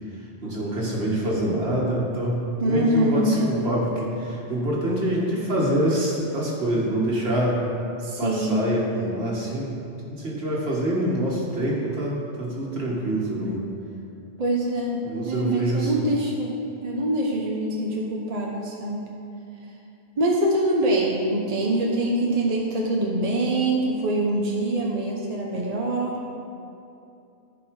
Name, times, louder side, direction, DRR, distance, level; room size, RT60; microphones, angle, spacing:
voice 1, 0.4-7.6 8.2-9.7 10.1-13.7 15.0-15.9, right 1 dB, 65° right, -4 dB, 2.1 m, -25 dB
voice 2, 2.6-3.4 8.0-8.6 14.4-16.5 16.8-19.1 20.2-26.2, right 1 dB, 40° right, -2 dB, 1.0 m, -24 dB
14.5 x 5.3 x 4.8 m, 2.7 s
omnidirectional pair, 1.1 m